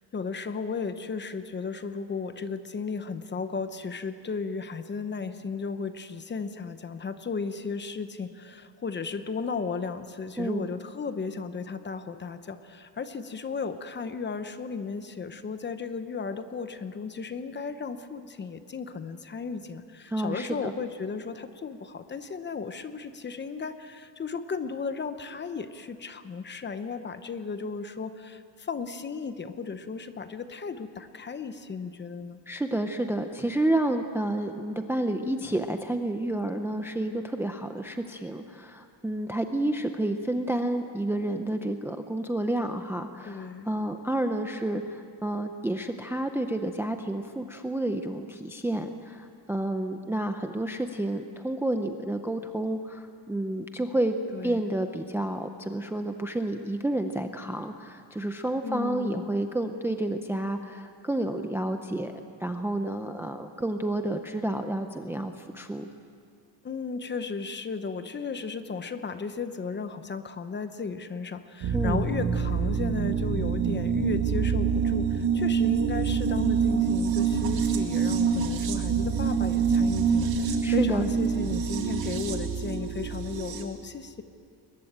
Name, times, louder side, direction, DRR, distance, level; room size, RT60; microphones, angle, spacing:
voice 1, 0.1-32.4 43.3-43.7 54.3-54.6 58.6-59.3 66.6-84.2, left 5 dB, 25° left, 10 dB, 0.8 m, -35 dB
voice 2, 10.4-10.7 20.1-20.7 32.5-54.2 54.4-65.9 71.7-72.1 80.6-81.0, right 1 dB, 5° right, 6 dB, 0.6 m, -30 dB
sound 1, 71.6-83.6, right 6 dB, 50° right, 2.3 m, -26 dB
22.0 x 20.0 x 8.8 m, 2.3 s
cardioid pair, 175°, 47 cm